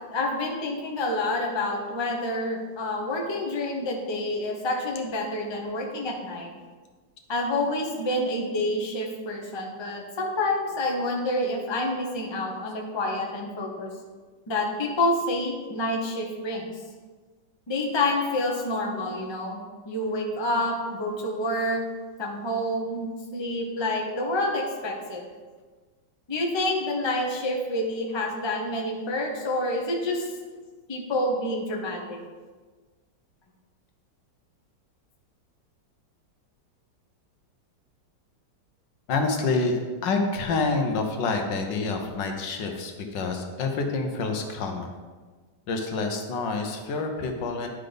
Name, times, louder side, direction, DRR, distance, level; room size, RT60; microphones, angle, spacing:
voice 1, 0.1-6.5 7.3-13.9 14.5-16.7 17.7-19.6 19.8-21.8 22.2-23.0 23.3-25.2 26.3-30.2 30.9-32.2, left 1 dB, 20° left, -1 dB, 0.9 m, -28 dB
voice 2, 39.1-44.9 45.7-47.7, left 3 dB, 75° left, 3 dB, 1.6 m, -27 dB
11.0 x 3.9 x 5.1 m, 1.4 s
omnidirectional pair, 2.0 m